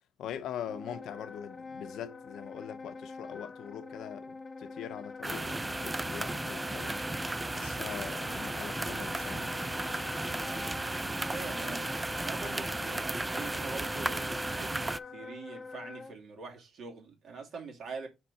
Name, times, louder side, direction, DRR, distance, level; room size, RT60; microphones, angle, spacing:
voice 1, 0.2-7.0 7.5-9.6, left 9 dB, 80° left, 0.7 m, -42 dB
Wind instrument woodwind instrument, 0.6-16.1, left 4 dB, 30° left, 0.7 m, -44 dB
sound 1, 5.2-15.0, right 2 dB, 15° right, 0.4 m, -35 dB
voice 2, 10.7-18.1, right 4 dB, 65° right, 2.5 m, -44 dB
5.7 x 4.5 x 4.1 m
cardioid pair, 90°, 0 cm